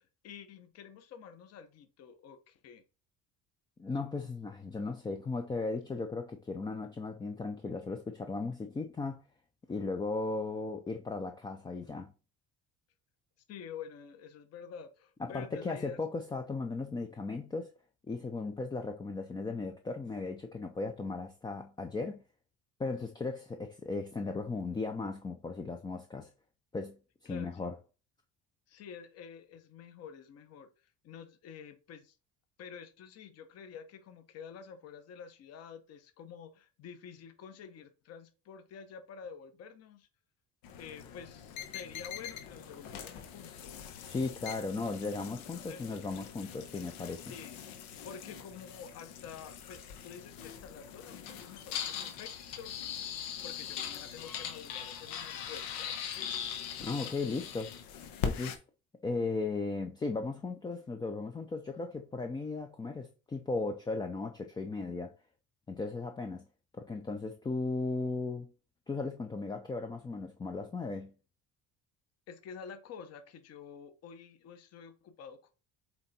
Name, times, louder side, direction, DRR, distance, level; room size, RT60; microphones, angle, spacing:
voice 1, 0.0-2.8 13.5-16.0 27.2-27.5 28.7-30.7 31.0-32.1 32.6-40.1 40.8-43.9 45.7-45.8 47.1-47.6 48.0-52.8 53.4-56.0 72.3-75.5, left 7 dB, 45° left, 1.0 m, -49 dB
voice 2, 3.8-9.2 9.7-12.1 15.2-17.7 18.1-22.2 22.8-26.3 26.7-27.7 44.0-47.3 56.8-57.7 58.2-58.6 59.0-65.1 65.7-66.5 66.8-68.5 68.9-71.1, left 3 dB, 15° left, 0.4 m, -36 dB
sound 1, 40.6-58.6, left 8 dB, 90° left, 1.3 m, -41 dB
7.9 x 3.4 x 4.2 m
cardioid pair, 160°, 35 cm